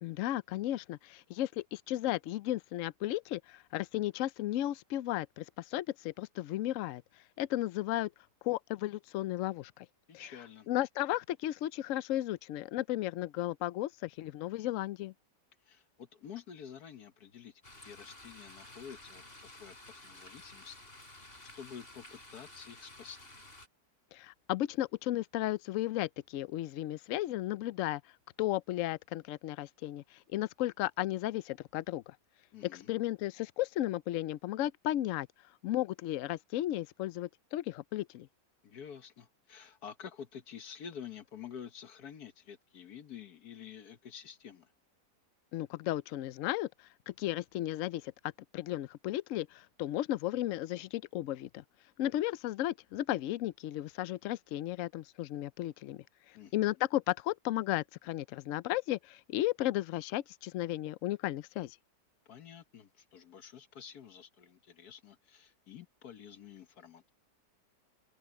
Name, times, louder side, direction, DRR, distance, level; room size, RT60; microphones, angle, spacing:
voice 1, 0.0-7.0 7.4-8.1 8.4-9.9 10.1-10.3 10.7-15.1 24.1-28.0 28.4-32.2 32.6-35.3 35.6-38.3 45.5-51.6 52.0-61.8, left 14 dB, 85° left, 0.7 m, -34 dB
voice 2, 10.1-10.7 15.7-20.8 21.2-21.3 21.5-23.3 32.5-32.9 38.6-44.7 56.3-56.5 62.3-67.1, left 8 dB, 60° left, 1.5 m, -49 dB
sound 1, 17.6-23.7, left 2 dB, 30° left, 4.7 m, -53 dB
open air
omnidirectional pair, 1.9 m